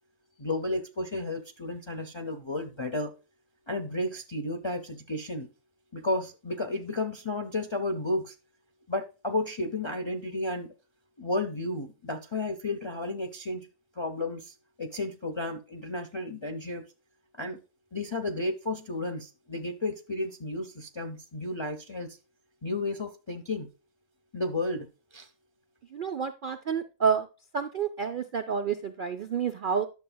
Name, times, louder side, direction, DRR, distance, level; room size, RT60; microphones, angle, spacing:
voice 1, 0.4-3.1 3.7-5.5 5.9-8.3 8.9-10.7 11.2-13.7 14.0-16.8 17.3-17.6 17.9-22.2 22.6-23.7 24.3-24.9 25.1-25.3, left 2 dB, 40° left, 0.4 m, -32 dB
voice 2, 25.9-27.3 27.5-29.9, right 6 dB, 65° right, 0.5 m, -29 dB
10.5 x 6.8 x 2.2 m
omnidirectional pair, 1.5 m